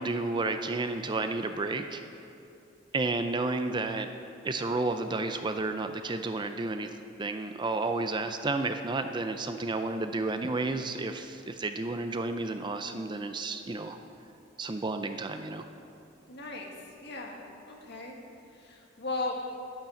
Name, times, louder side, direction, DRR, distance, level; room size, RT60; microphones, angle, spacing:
voice 1, 0.0-2.0 2.9-4.1 4.4-6.9 7.2-14.0 14.6-15.6, right 3 dB, 25° right, 8 dB, 0.5 m, -31 dB
voice 2, 16.3-16.7 17.0-17.4 17.7-18.2 18.5-19.4, left 3 dB, 55° left, 0 dB, 1.8 m, -36 dB
10.5 x 10.5 x 7.0 m, 2.7 s
head